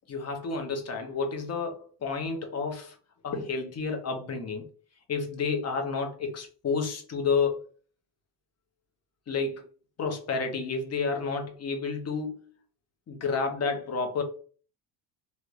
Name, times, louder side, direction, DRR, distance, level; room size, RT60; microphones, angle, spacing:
voice 1, 0.1-3.0 3.2-4.7 5.1-7.6 9.3-9.7 10.0-12.5 13.1-14.2, left 4 dB, 30° left, 4 dB, 0.8 m, -30 dB
3.2 x 2.6 x 3.0 m, 0.41 s
cardioid pair, 125°, 49 cm